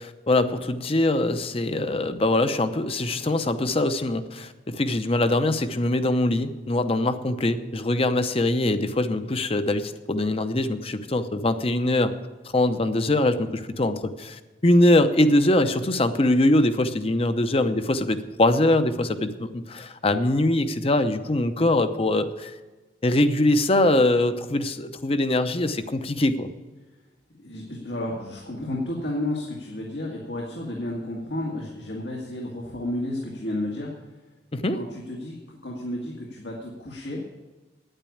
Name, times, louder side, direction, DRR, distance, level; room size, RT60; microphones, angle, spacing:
voice 1, 0.0-12.1 12.5-22.5 23.0-26.5 34.5-34.8, left 1 dB, 35° left, 10 dB, 0.7 m, -23 dB
voice 2, 27.4-33.9 34.7-37.2, left 1 dB, 80° left, -2 dB, 2.0 m, -32 dB
9.5 x 9.0 x 8.6 m, 1.2 s
head